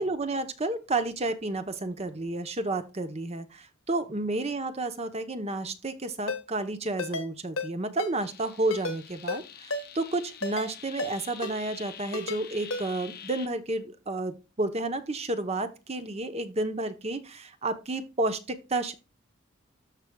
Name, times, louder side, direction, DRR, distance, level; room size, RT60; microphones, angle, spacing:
voice 1, 0.0-18.9, right 2 dB, 30° right, 10 dB, 0.8 m, -31 dB
Ringtone, 6.3-6.4 7.0-7.3 7.6-7.7 8.0-8.1 8.7-9.0 9.3-9.4 9.7-9.8 10.4-10.7 11.0-11.1 11.4-11.5 12.1-12.4 12.7-12.8, left 2 dB, 75° left, 1.3 m, -32 dB
sound 1, 8.2-13.5, left 9 dB, 45° left, 0.8 m, -46 dB
13.5 x 4.8 x 2.3 m, 0.29 s
head